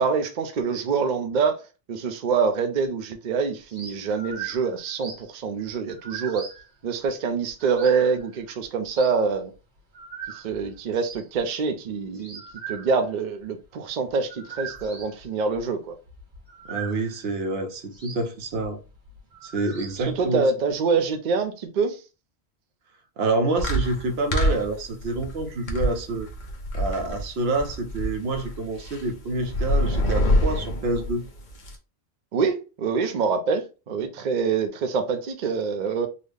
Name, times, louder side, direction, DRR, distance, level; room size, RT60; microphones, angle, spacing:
voice 1, 0.0-1.6 1.9-6.5 6.8-9.5 10.3-12.4 12.7-15.9 20.0-22.0 32.3-36.1, right 5 dB, 55° right, 0.6 m, -25 dB
sound 1, 3.7-5.3 5.7-6.7 7.5-9.6 9.9-17.3 17.9-20.3 20.7-20.8, right 7 dB, 90° right, 1.6 m, -40 dB
voice 2, 16.7-18.8 19.4-20.4 23.2-26.3 26.7-31.2, right 2 dB, 70° right, 0.9 m, -27 dB
Creepy Sounds, 23.6-31.7, equal, 50° left, 0.8 m, -26 dB
3.9 x 2.0 x 3.3 m
omnidirectional pair, 1.1 m